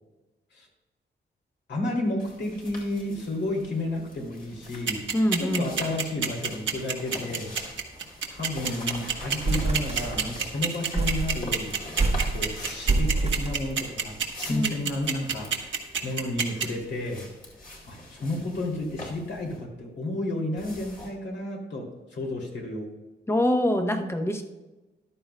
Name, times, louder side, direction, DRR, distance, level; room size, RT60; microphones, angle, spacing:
voice 1, 1.7-5.0 5.4-7.6 8.3-11.8 12.3-15.5 16.0-17.3 17.9-23.0, left 1 dB, 70° left, -1 dB, 2.6 m, -32 dB
sound 1, 2.2-19.6 20.6-21.1, left 1 dB, 45° left, 2.4 m, -43 dB
sound 2, 4.9-16.6, right 7 dB, 85° right, 1.2 m, -26 dB
voice 2, 5.1-5.7 14.5-14.9 23.3-24.4, left 1 dB, 15° left, 5 dB, 0.8 m, -25 dB
sound 3, 7.4-7.7 8.0-8.1 8.4-8.7 9.1-10.5 10.9-14.2, right 3 dB, 35° right, 1.0 m, -28 dB
14.0 x 11.5 x 2.2 m, 1.1 s
wide cardioid pair, 160°, 19 cm